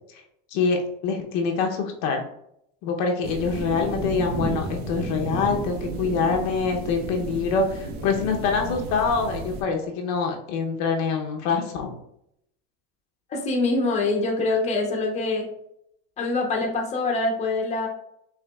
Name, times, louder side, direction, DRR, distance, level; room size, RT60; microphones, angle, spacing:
voice 1, 0.5-2.2 2.8-11.9, left 5 dB, 55° left, 2 dB, 0.8 m, -25 dB
sound 1, 3.2-9.6, right 3 dB, 55° right, 0.9 m, -32 dB
voice 2, 13.3-15.5 16.2-17.9, left 3 dB, 20° left, 1 dB, 0.8 m, -24 dB
5.9 x 3.3 x 2.3 m, 0.76 s
supercardioid pair, 140°, 33 cm